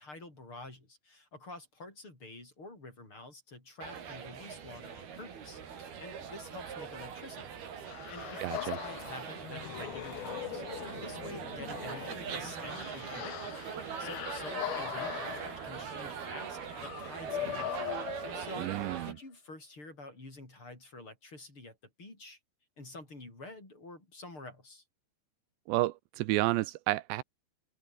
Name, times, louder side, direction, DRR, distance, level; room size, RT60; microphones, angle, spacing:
voice 1, 0.0-7.6 8.1-13.6 13.8-17.8 18.1-18.7 19.0-22.4 22.8-24.8, left 2 dB, 30° left, 8.0 m, -48 dB
sound 1, 3.8-19.1, right 7 dB, 60° right, 5.3 m, -41 dB
sound 2, 7.9-18.9, left 14 dB, 70° left, 2.6 m, -41 dB
voice 2, 8.4-8.8 18.6-19.1 25.7-27.2, right 18 dB, 80° right, 2.9 m, -31 dB
omnidirectional pair, 5.1 m